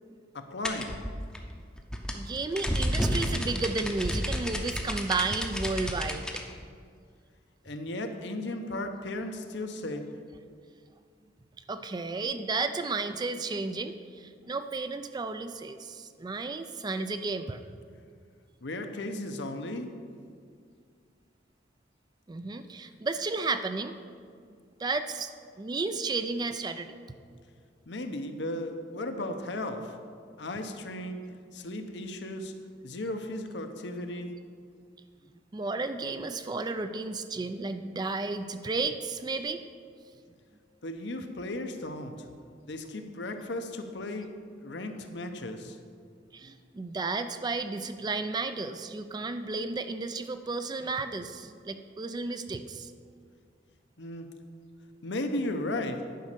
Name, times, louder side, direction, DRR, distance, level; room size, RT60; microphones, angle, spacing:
voice 1, 0.3-1.0 7.6-10.0 18.6-19.9 27.9-30.0 30.4-31.2 31.5-32.5 32.8-34.3 40.8-42.3 42.7-44.3 44.6-45.8 54.0-54.3 55.0-56.0, left 1 dB, 70° left, 6 dB, 0.8 m, -35 dB
sound 1, 0.6-6.4, equal, 5° left, 0.7 m, -31 dB
voice 2, 2.1-6.2 11.7-17.6 22.3-24.0 24.8-27.0 35.5-39.6 46.3-52.9, right 3 dB, 25° right, 9 dB, 0.3 m, -33 dB
10.5 x 5.3 x 6.7 m, 2.2 s
head